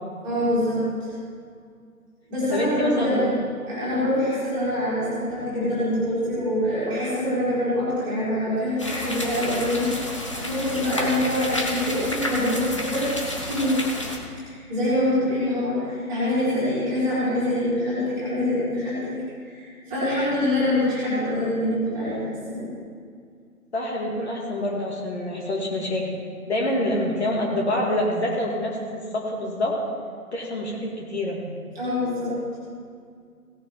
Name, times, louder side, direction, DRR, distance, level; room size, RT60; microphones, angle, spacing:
voice 1, 0.2-1.1 2.3-3.4 3.7-13.1 13.5-13.8 14.4-19.1 19.4-22.2 22.5-22.7 31.7-32.3, left 1 dB, 10° right, -11 dB, 3.2 m, -25 dB
voice 2, 2.5-3.3 23.7-26.1 26.5-29.8 30.3-31.4, left 1 dB, 45° left, -3 dB, 2.4 m, -26 dB
sound 1, 8.8-14.2, left 1 dB, 20° left, 0.8 m, -30 dB
17.0 x 6.8 x 4.6 m, 2.2 s
figure-of-eight pair, 155°, 45 cm